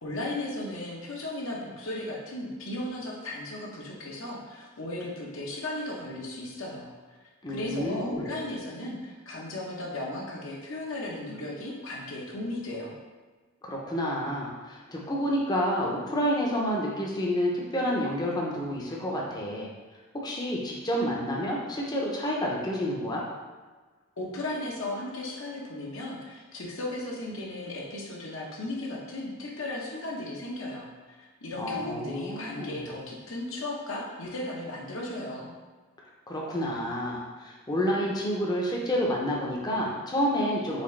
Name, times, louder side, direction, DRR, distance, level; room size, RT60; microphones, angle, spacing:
voice 1, 0.0-6.9 7.5-12.9 24.2-30.9 31.2-35.5, left 1 dB, 65° left, -2 dB, 0.8 m, -36 dB
voice 2, 7.4-8.3 13.6-19.7 20.1-23.2 31.6-32.9 36.3-40.8, equal, 20° left, -3 dB, 0.6 m, -29 dB
4.1 x 3.2 x 3.2 m, 1.4 s
head